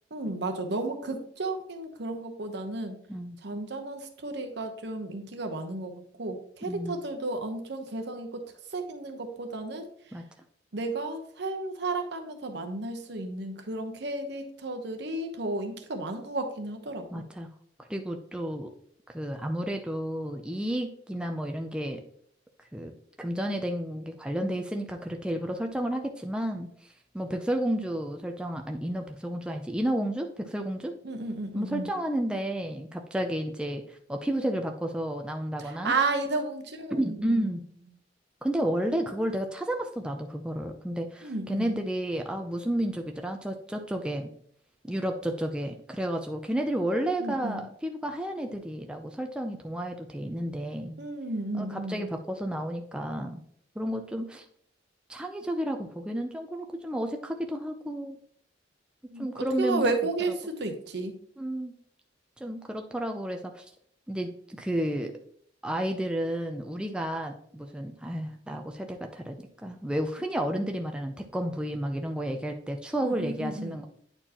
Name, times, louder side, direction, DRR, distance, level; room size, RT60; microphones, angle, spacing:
voice 1, 0.1-3.0 3.4-8.4 8.7-9.9 10.7-17.2 31.0-31.9 35.6-37.5 41.2-41.8 47.2-47.6 51.0-52.1 59.1-59.3 59.6-61.1 73.0-73.7, right 2 dB, 65° right, 5 dB, 0.9 m, -33 dB
voice 2, 6.6-7.0 10.1-10.2 17.1-17.5 17.9-18.7 19.1-22.0 22.7-22.9 23.2-26.7 27.1-31.0 31.5-35.9 36.9-37.6 38.4-44.3 44.8-51.0 51.5-53.4 53.8-54.4 55.1-58.2 59.2-59.9 61.4-61.8 62.4-63.6 64.1-65.1 65.6-69.4 69.6-73.9, right 1 dB, 5° right, 3 dB, 0.4 m, -31 dB
8.9 x 4.4 x 2.9 m, 0.64 s
head